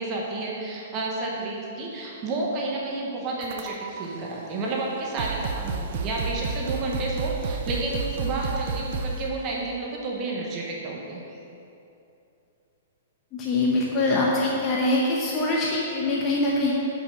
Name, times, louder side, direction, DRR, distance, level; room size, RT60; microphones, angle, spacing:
voice 1, 0.0-11.4, right 2 dB, 25° right, -2 dB, 0.9 m, -31 dB
sound 1, 3.4-4.0 4.8-4.9 5.2-9.4, right 4 dB, 50° right, 0.4 m, -31 dB
voice 2, 13.3-16.7, left 2 dB, 20° left, -4 dB, 0.8 m, -23 dB
6.4 x 5.6 x 6.1 m, 2.8 s
hypercardioid pair, 165°, 0 cm